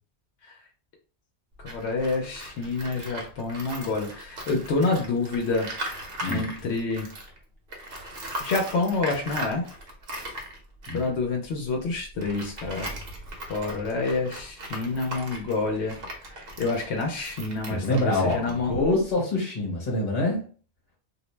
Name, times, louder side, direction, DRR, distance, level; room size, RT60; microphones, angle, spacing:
voice 1, 1.6-5.7 6.3-7.1 8.4-9.6 10.9-12.9 13.5-16.0 16.6-18.8, left 3 dB, 80° left, 1 dB, 0.9 m, -28 dB
Tools, 1.6-7.4 7.7-19.1, right 1 dB, 65° right, 0.9 m, -39 dB
voice 2, 6.2-6.5 10.9-11.1 17.7-20.4, left 2 dB, 40° left, -3 dB, 1.1 m, -26 dB
2.4 x 2.0 x 3.1 m, 0.40 s
omnidirectional pair, 1.1 m